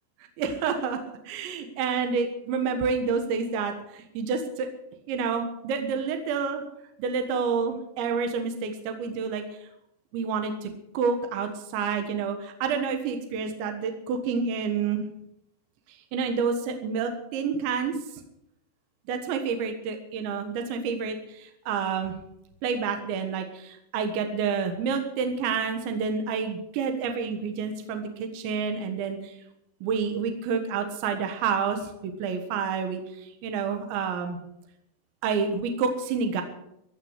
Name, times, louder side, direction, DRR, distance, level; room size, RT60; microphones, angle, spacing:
voice 1, 0.4-1.0 1.3-4.7 5.1-6.6 7.0-9.4 10.1-15.0 16.1-18.0 19.1-22.2 22.6-29.3 29.8-34.4 35.2-36.4, right 5 dB, 70° right, 5 dB, 3.6 m, -29 dB
15.5 x 10.5 x 8.1 m, 0.80 s
omnidirectional pair, 5.7 m